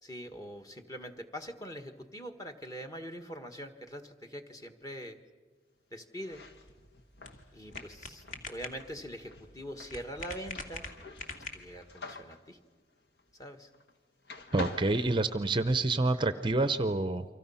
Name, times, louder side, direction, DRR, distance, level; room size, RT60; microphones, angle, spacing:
voice 1, 0.0-5.2 5.9-6.4 7.5-10.8 11.5-12.6 13.4-13.7, equal, 20° left, 5 dB, 1.5 m, -43 dB
sound 1, 6.1-14.0 14.2-15.9, left 2 dB, 65° left, 1.7 m, -47 dB
sound 2, 6.3-11.9, left 2 dB, 45° left, 2.2 m, -45 dB
voice 2, 14.5-17.3, right 2 dB, 25° right, 11 dB, 0.6 m, -28 dB
29.5 x 24.5 x 5.7 m, 1.4 s
head